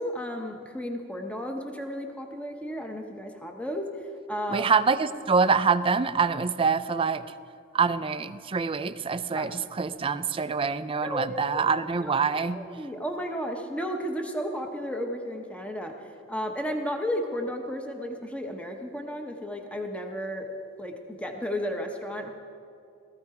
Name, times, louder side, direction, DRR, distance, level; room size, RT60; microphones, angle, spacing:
voice 1, 0.0-3.9 4.3-4.7 9.3-9.5 11.0-11.6 12.0-20.5 20.8-22.3, equal, 5° left, 3 dB, 0.9 m, -33 dB
voice 2, 4.5-7.3 7.7-12.6, right 5 dB, 25° right, 13 dB, 0.4 m, -25 dB
17.5 x 14.0 x 4.8 m, 2.5 s
head